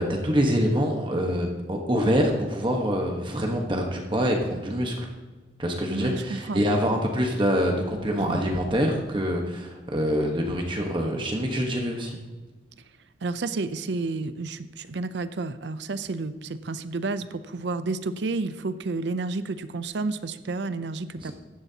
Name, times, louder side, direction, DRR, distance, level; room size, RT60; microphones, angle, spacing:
voice 1, 0.0-5.1 5.6-12.2 21.2-21.3, equal, 25° right, 1 dB, 1.2 m, -25 dB
voice 2, 5.9-6.6 8.3-8.4 13.2-21.3, right 3 dB, 70° right, 13 dB, 0.5 m, -31 dB
15.0 x 11.0 x 2.8 m, 1.3 s
head